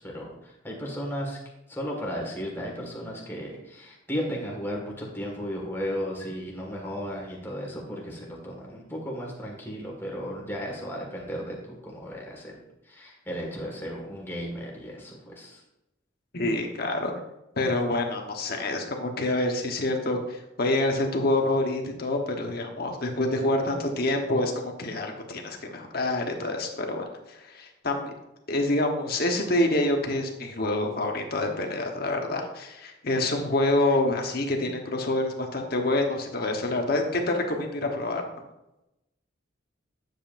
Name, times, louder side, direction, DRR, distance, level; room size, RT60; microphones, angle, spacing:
voice 1, 0.0-1.4 1.7-12.6 12.9-15.6, equal, 10° left, -2 dB, 1.9 m, -35 dB
voice 2, 16.3-17.1 17.6-28.1 28.5-38.2, left 2 dB, 50° left, 2 dB, 1.2 m, -27 dB
9.6 x 7.7 x 2.6 m, 0.92 s
head